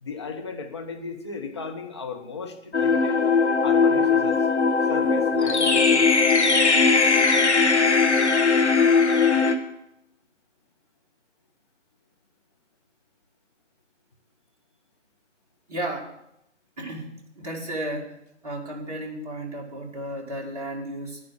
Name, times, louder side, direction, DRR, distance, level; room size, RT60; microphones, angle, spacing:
voice 1, 0.0-3.2 3.6-4.5 4.9-6.1, left 4 dB, 20° left, 3 dB, 0.9 m, -35 dB
sound 1, 2.7-9.6, left 4 dB, 60° left, 1.4 m, -19 dB
voice 2, 15.7-16.1 16.8-18.2 18.4-21.2, right 1 dB, 30° right, -1 dB, 2.1 m, -33 dB
10.5 x 9.7 x 7.1 m, 0.82 s
figure-of-eight pair, 150°, 37 cm